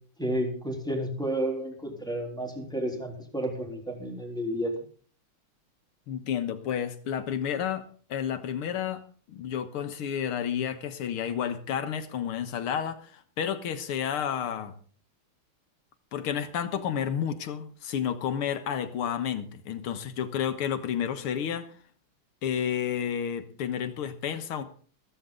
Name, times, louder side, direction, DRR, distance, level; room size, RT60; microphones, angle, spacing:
voice 1, 0.2-4.7, right 1 dB, ahead, 3.3 m, -31 dB
voice 2, 6.1-9.0 9.3-14.8 16.1-21.7 22.4-24.6, left 8 dB, 90° left, 2.2 m, -31 dB
14.5 x 14.0 x 3.8 m
omnidirectional pair, 2.3 m